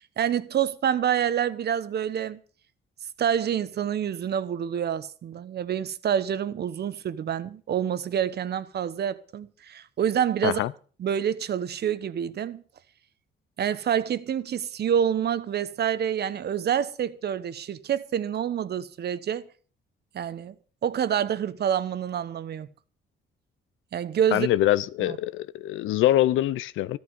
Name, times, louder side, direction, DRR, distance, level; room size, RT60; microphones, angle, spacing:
voice 1, 0.0-2.4 3.2-10.6 11.0-12.6 13.6-19.4 20.1-20.5 20.8-22.7 23.9-24.5 25.0-25.2, right 9 dB, 55° right, 1.0 m, -27 dB
voice 2, 24.3-27.0, left 14 dB, 85° left, 0.6 m, -24 dB
13.5 x 11.5 x 5.4 m
cardioid pair, 90°, 20 cm